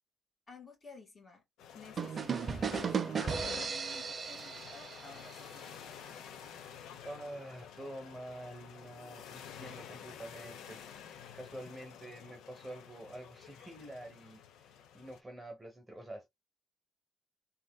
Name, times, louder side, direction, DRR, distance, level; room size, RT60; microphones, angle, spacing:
voice 1, 0.5-1.4 1.7-5.7, left 4 dB, 30° left, 2.2 m, -54 dB
sound 1, 1.6-15.2, left 8 dB, 80° left, 0.6 m, -50 dB
sound 2, 2.0-5.7, right 6 dB, 35° right, 0.4 m, -36 dB
voice 2, 7.0-10.8 11.3-16.3, right 1 dB, 10° right, 1.0 m, -47 dB
3.6 x 2.8 x 2.2 m
cardioid pair, 125°, 0 cm